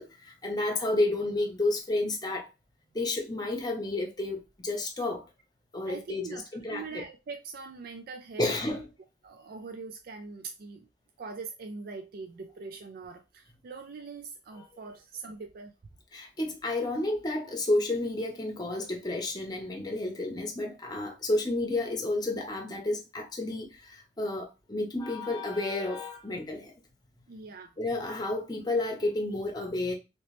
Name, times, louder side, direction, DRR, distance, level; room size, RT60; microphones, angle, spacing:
voice 1, 0.0-2.5 2.9-5.2 5.7-6.3 6.5-7.0 8.4-8.9 14.6-14.7 16.1-26.7 27.8-29.9, left 2 dB, 20° left, 0.8 m, -31 dB
voice 2, 5.9-8.8 9.2-10.9 11.2-15.7 27.3-27.7, right 4 dB, 55° right, 0.4 m, -42 dB
3.0 x 2.9 x 3.0 m
head